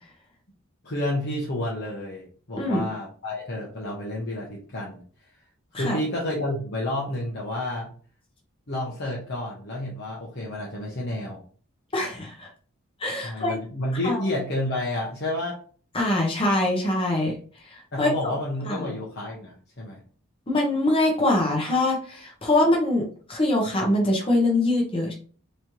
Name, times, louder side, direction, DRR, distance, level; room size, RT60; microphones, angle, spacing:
voice 1, 0.8-5.0 5.7-7.9 8.7-11.4 13.2-15.6 17.9-20.0, left 1 dB, 50° left, -4 dB, 1.0 m, -30 dB
voice 2, 11.9-12.5 13.0-13.6 14.0-14.2 15.9-17.3 17.6-18.1 18.7-18.9 20.5-25.1, left 1 dB, 25° left, 0 dB, 1.0 m, -23 dB
4.1 x 3.1 x 2.9 m, 0.42 s
head